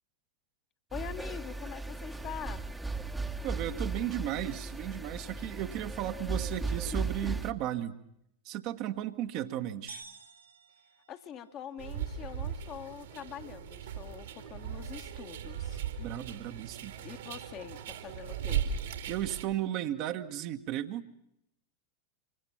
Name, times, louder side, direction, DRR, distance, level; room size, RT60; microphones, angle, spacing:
voice 1, 0.9-2.7 11.1-16.0 17.0-18.6, left 9 dB, 35° left, 7 dB, 1.4 m, -44 dB
sound 1, 0.9-7.5, right 3 dB, 5° right, 1.2 m, -36 dB
voice 2, 3.4-8.0 8.4-10.0 16.0-16.9 19.1-21.1, right 12 dB, 40° right, 7 dB, 1.3 m, -35 dB
sound 2, 9.9-11.8, right 4 dB, 85° right, 2.5 m, -51 dB
sound 3, 11.8-19.4, right 8 dB, 60° right, 2.3 m, -38 dB
26.5 x 25.5 x 5.9 m, 0.76 s
figure-of-eight pair, 90°, 0 cm